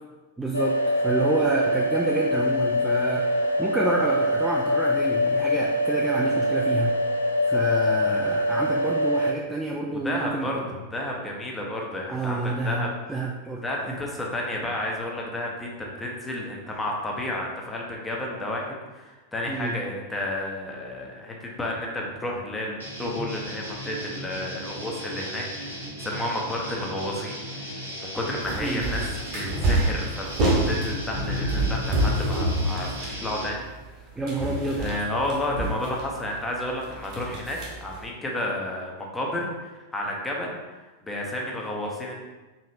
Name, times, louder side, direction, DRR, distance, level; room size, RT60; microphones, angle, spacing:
voice 1, 0.4-6.9 7.5-10.5 12.1-14.0 19.5-19.8 28.6-28.8 34.2-35.0, right 2 dB, 10° right, -2 dB, 0.3 m, -29 dB
sound 1, 0.5-9.3, left 1 dB, 75° left, 0.3 m, -24 dB
voice 2, 10.0-12.9 13.6-33.7 34.7-40.8 41.0-42.1, left 1 dB, 10° left, -1 dB, 0.7 m, -31 dB
sound 2, 22.8-33.5, equal, 85° right, 1.0 m, -37 dB
sound 3, 28.4-34.0 34.3-36.4 36.8-38.1, right 1 dB, 40° right, 0.9 m, -27 dB
4.1 x 2.9 x 2.6 m, 1.2 s
figure-of-eight pair, 90°, 0 cm